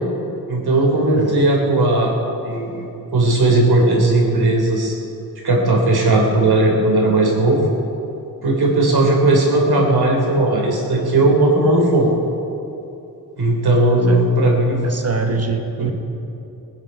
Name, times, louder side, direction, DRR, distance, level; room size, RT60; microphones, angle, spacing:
voice 1, 0.5-2.2 2.4-4.9 5.4-7.6 8.4-12.1 13.4-14.8, right 2 dB, 70° right, -1 dB, 3.3 m, -16 dB
voice 2, 14.8-15.9, right 4 dB, 40° right, 5 dB, 1.0 m, -23 dB
20.0 x 9.8 x 5.5 m, 2.9 s
wide cardioid pair, 105°, 39 cm